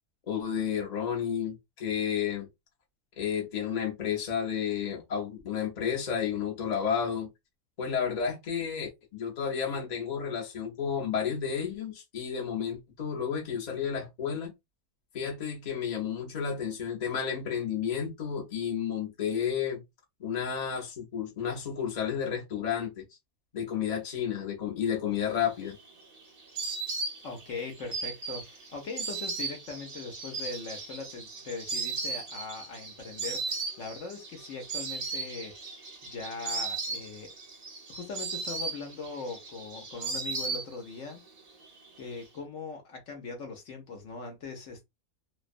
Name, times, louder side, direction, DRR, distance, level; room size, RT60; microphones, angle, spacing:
voice 1, 0.3-2.5 3.2-7.3 7.8-14.5 15.1-19.8 20.2-23.0 23.5-25.8, left 7 dB, 40° left, 0.7 m, -31 dB
Insect, 25.4-41.1 41.4-42.2, right 4 dB, 85° right, 0.3 m, -37 dB
voice 2, 27.2-35.7 36.0-37.3 37.9-41.2 42.0-44.8, left 4 dB, 60° left, 1.0 m, -40 dB
2.6 x 2.2 x 2.4 m
omnidirectional pair, 1.6 m